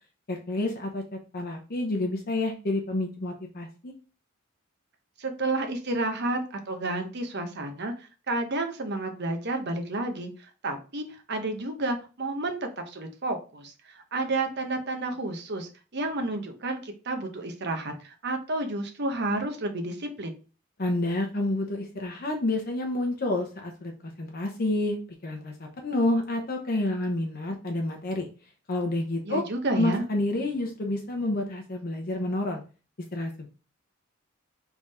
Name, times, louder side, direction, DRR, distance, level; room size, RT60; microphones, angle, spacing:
voice 1, 0.3-3.9 20.8-23.9 24.2-28.3 28.7-29.4 29.7-32.6 33.1-33.5, left 2 dB, 45° left, 2 dB, 0.8 m, -29 dB
voice 2, 5.2-20.3 29.3-30.0, right 2 dB, 50° right, 5 dB, 0.9 m, -31 dB
3.6 x 3.6 x 4.1 m, 0.35 s
head